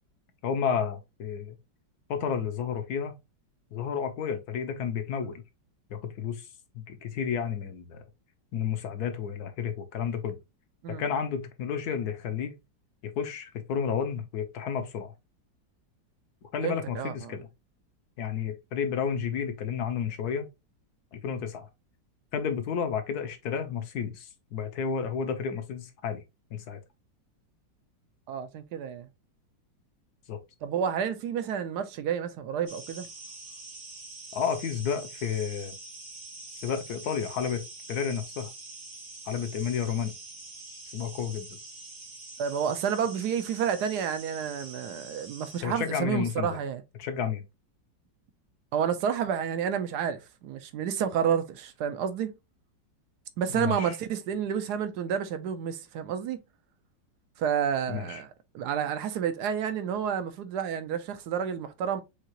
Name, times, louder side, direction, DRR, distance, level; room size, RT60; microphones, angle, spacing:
voice 1, 0.4-1.6 2.1-3.1 3.7-5.4 5.9-6.5 6.7-8.0 8.5-10.4 10.9-12.6 13.0-15.1 16.5-17.5 18.2-20.5 21.1-21.7 22.3-26.2 26.5-26.8 30.3-30.4 34.3-35.8 36.5-37.6 37.9-38.5 39.3-40.1 40.9-41.5 45.6-46.6 47.0-47.4 53.5-54.0 57.9-58.2, left 7 dB, 65° left, 1.2 m, -31 dB
voice 2, 16.6-17.4 28.3-29.1 30.6-33.1 42.4-46.8 48.7-52.3 53.4-56.4 57.4-58.3 58.5-62.0, right 8 dB, 70° right, 1.1 m, -30 dB
sound 1, 32.7-45.6, right 3 dB, 85° right, 2.4 m, -45 dB
6.5 x 2.4 x 2.9 m
omnidirectional pair, 2.1 m